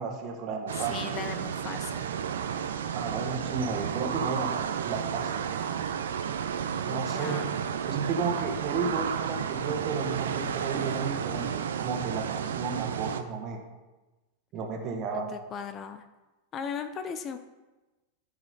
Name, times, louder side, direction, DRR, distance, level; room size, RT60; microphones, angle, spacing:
voice 1, 0.0-1.1 2.9-5.5 6.9-7.4 7.8-13.6 14.5-15.4, right 5 dB, 35° right, 3 dB, 1.5 m, -33 dB
sound 1, 0.7-13.2, right 8 dB, 65° right, 0.5 m, -32 dB
voice 2, 0.8-2.0 6.9-7.5 15.1-16.0 16.5-17.4, left 7 dB, 30° left, 9 dB, 0.6 m, -37 dB
13.5 x 4.9 x 4.0 m, 1.1 s
figure-of-eight pair, 90°, 0 cm